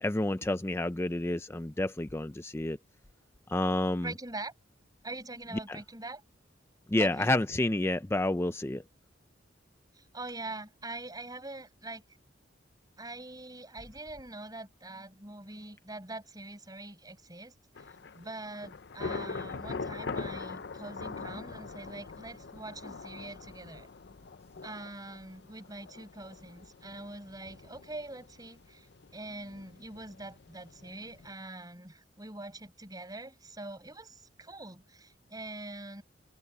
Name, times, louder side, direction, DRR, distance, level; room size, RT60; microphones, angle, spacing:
voice 1, 0.0-2.8 3.5-4.1 5.7-5.8 6.9-8.8, left 1 dB, 15° left, 0.5 m, -29 dB
voice 2, 4.0-4.5 5.0-6.2 7.0-7.3 9.9-12.0 13.0-17.9 18.1-23.9 24.6-36.0, right 2 dB, 20° right, 5.8 m, -44 dB
Thunder / Rain, 17.8-31.3, left 4 dB, 60° left, 0.6 m, -43 dB
open air
head